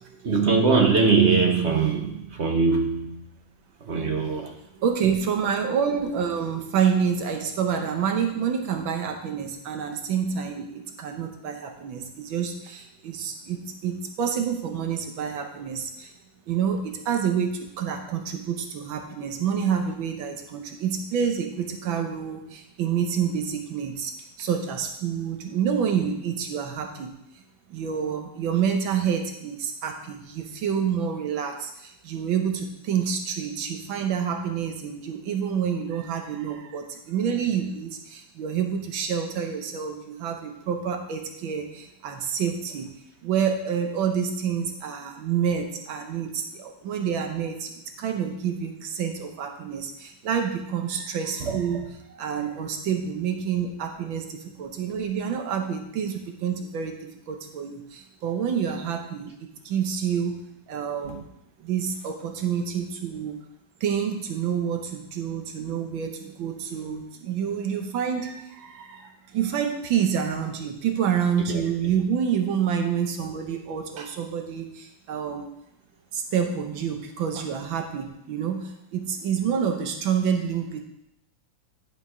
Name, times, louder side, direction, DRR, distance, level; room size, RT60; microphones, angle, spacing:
voice 1, 0.0-3.3 3.8-4.6 51.4-51.8 61.0-61.2 71.5-71.9, right 4 dB, 45° right, 2 dB, 1.0 m, -23 dB
voice 2, 4.8-16.1 16.5-24.1 24.4-27.1 27.7-42.9 43.2-51.8 52.1-60.4 60.7-61.2 61.6-63.4 63.8-75.5 76.1-80.8, right 7 dB, 85° right, 4 dB, 1.7 m, -28 dB
10.5 x 5.1 x 4.9 m, 0.82 s
omnidirectional pair, 2.1 m